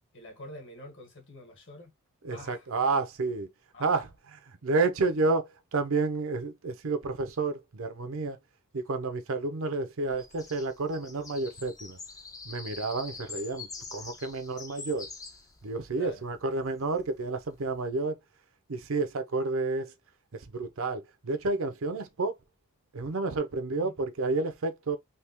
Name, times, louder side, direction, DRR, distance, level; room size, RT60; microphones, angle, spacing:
voice 1, 0.1-1.9 2.3-2.7 3.7-3.9 15.9-16.2 23.8-23.9, left 1 dB, 55° left, 1.6 m, -46 dB
voice 2, 2.2-3.5 3.8-8.4 8.7-12.0 12.4-15.1 15.6-18.2 18.7-19.9 20.3-22.4 22.9-25.0, right 3 dB, 65° right, 0.6 m, -30 dB
sound 1, 10.1-17.8, left 4 dB, 15° left, 0.4 m, -46 dB
3.4 x 2.8 x 2.9 m
head